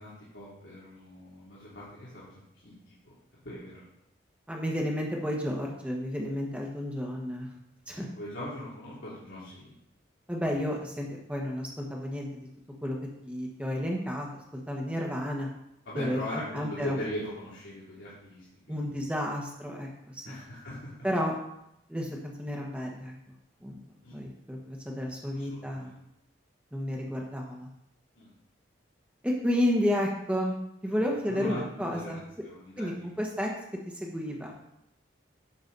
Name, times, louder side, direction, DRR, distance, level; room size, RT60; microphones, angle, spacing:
voice 1, 0.0-3.1 3.4-3.8 7.9-9.8 15.8-19.0 20.2-20.9 24.0-24.2 25.3-26.0 28.2-28.3 31.0-33.2, left 1 dB, 85° left, -9 dB, 2.9 m, -40 dB
voice 2, 4.5-7.5 7.9-8.1 10.3-12.5 12.8-13.0 13.2-14.3 14.5-15.5 15.9-17.0 18.7-20.3 21.0-21.3 21.9-23.1 23.6-23.8 24.1-26.0 26.7-27.7 29.2-30.6 30.8-32.2 32.8-33.5 33.9-34.5, equal, 5° right, -1 dB, 1.3 m, -31 dB
10.0 x 6.9 x 4.1 m, 0.80 s
head